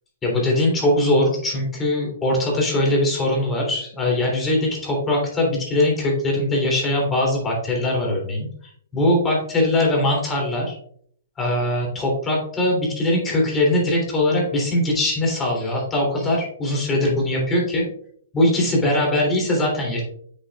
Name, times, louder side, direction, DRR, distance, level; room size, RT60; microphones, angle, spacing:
voice 1, 0.2-10.7 11.4-17.9 18.3-20.0, left 1 dB, 15° left, -2 dB, 3.1 m, -21 dB
8.0 x 6.6 x 2.4 m, 0.62 s
hypercardioid pair, 140°, 0 cm